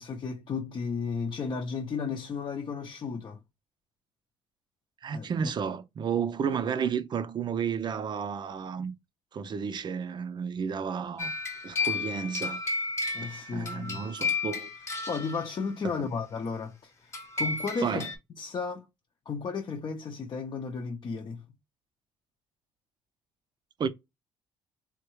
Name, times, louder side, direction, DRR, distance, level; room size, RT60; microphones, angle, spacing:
voice 1, 0.0-3.4 5.1-5.5 13.1-14.0 15.1-16.9 17.4-18.0 18.4-18.9 19.3-21.4, left 5 dB, 45° left, 0.6 m, -34 dB
voice 2, 5.0-8.9 9.3-11.3 11.6-12.6 13.2-14.7 16.0-16.1 17.8-18.1 23.8-23.9, right 7 dB, 45° right, 0.5 m, -32 dB
sound 1, 11.2-15.7 17.1-18.2, left 4 dB, 25° left, 0.9 m, -33 dB
3.5 x 2.3 x 3.1 m
supercardioid pair, 70°, 10 cm